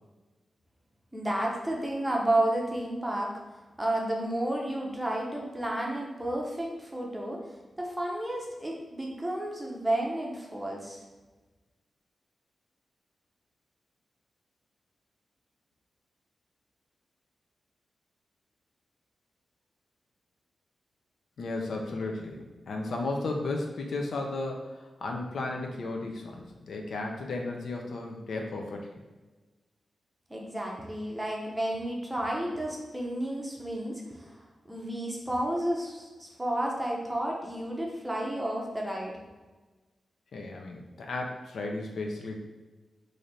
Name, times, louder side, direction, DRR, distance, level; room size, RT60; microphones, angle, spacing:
voice 1, 1.1-3.3 3.8-7.5 7.8-11.0 30.3-39.2, right 1 dB, 5° right, -2 dB, 0.6 m, -31 dB
voice 2, 21.4-28.9 40.3-42.4, left 2 dB, 75° left, 1 dB, 0.5 m, -34 dB
3.2 x 2.5 x 4.0 m, 1.3 s
wide cardioid pair, 165°, 0 cm